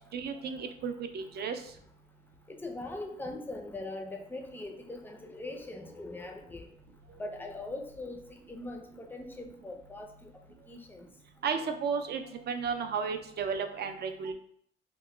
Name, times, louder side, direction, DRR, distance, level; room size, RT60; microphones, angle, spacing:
voice 1, 0.1-1.6 11.4-14.3, right 6 dB, 50° right, 7 dB, 0.4 m, -33 dB
voice 2, 2.5-6.7 7.2-10.3 10.7-11.1, left 2 dB, 10° left, 3 dB, 0.4 m, -41 dB
2.9 x 2.1 x 3.2 m, 0.67 s
cardioid pair, 110°, 21 cm